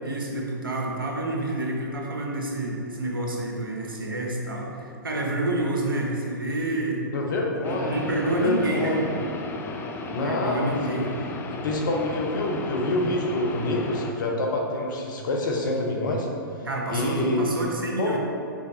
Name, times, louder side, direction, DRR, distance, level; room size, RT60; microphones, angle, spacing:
voice 1, 0.0-7.0 7.7-9.0 10.0-11.1 16.6-18.2, right 2 dB, 90° right, -1 dB, 1.2 m, -28 dB
voice 2, 7.1-9.1 10.1-11.1 11.5-16.3 16.9-17.5 18.0-18.2, left 2 dB, 65° left, 0 dB, 1.2 m, -27 dB
sound 1, 7.6-14.1, left 3 dB, 20° left, 0.5 m, -35 dB
6.1 x 4.2 x 4.2 m, 2.6 s
hypercardioid pair, 115°, 11 cm